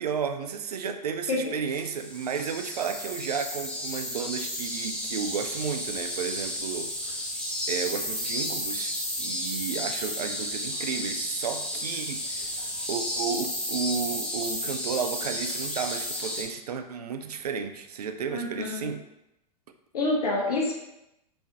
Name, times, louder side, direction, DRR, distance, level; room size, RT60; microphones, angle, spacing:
voice 1, 0.0-7.2 7.7-8.9 9.2-12.6 12.9-19.0, right 6 dB, 75° right, 7 dB, 0.4 m, -33 dB
voice 2, 1.3-1.8 18.3-18.9 19.9-20.8, left 2 dB, 70° left, -3 dB, 0.8 m, -28 dB
sound 1, 1.7-16.4, left 1 dB, 5° left, 0.8 m, -32 dB
3.4 x 3.2 x 2.8 m, 0.87 s
hypercardioid pair, 95°, 20 cm